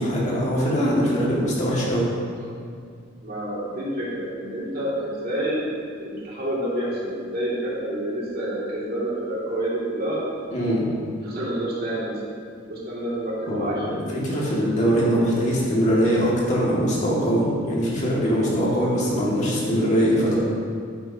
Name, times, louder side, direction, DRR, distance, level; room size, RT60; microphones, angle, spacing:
voice 1, 0.0-2.1 10.5-10.9 13.5-20.4, equal, 35° left, -5 dB, 2.0 m, -22 dB
voice 2, 3.2-5.7 6.0-10.2 11.2-12.1 12.7-14.7, right 1 dB, 50° right, -6 dB, 2.3 m, -28 dB
10.0 x 9.4 x 2.8 m, 2.1 s
head